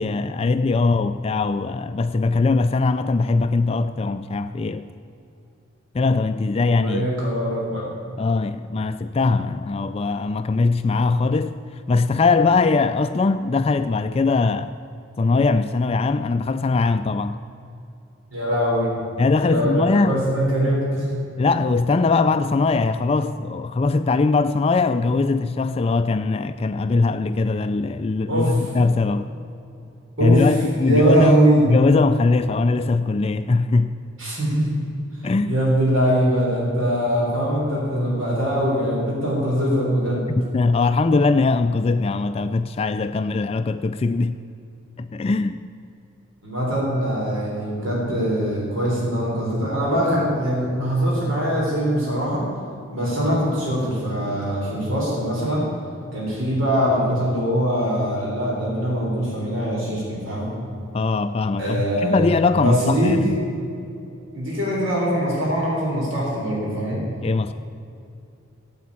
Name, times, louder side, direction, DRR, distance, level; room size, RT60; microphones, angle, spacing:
voice 1, 0.0-4.9 5.9-7.1 8.2-14.7 15.2-17.4 19.2-20.2 21.4-29.3 30.2-31.4 31.6-33.9 35.2-35.6 40.3-44.4 45.0-45.6 60.9-63.4 67.2-67.5, left 3 dB, 30° left, 10 dB, 0.3 m, -21 dB
voice 2, 6.7-7.8 18.3-18.9 19.4-21.2 28.3-28.6 30.2-30.5 30.8-31.7 34.2-34.8 35.5-40.2 46.4-52.4 52.9-55.7 56.1-60.5 61.6-62.2 62.6-63.3 64.3-67.0, equal, 75° right, -4 dB, 3.7 m, -22 dB
13.5 x 8.5 x 8.5 m, 2.7 s
head